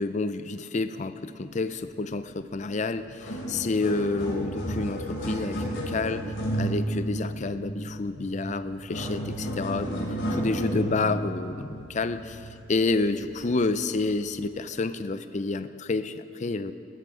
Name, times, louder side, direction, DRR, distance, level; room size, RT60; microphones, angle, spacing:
voice 1, 0.0-6.3 6.5-10.0 10.3-12.4 12.7-16.7, left 3 dB, 40° left, 12 dB, 0.5 m, -29 dB
sound 1, 2.7-2.8 3.1-12.8 13.4-13.6 14.3-14.4, right 1 dB, 90° left, 3.5 m, -33 dB
19.0 x 12.5 x 3.8 m, 2.4 s
head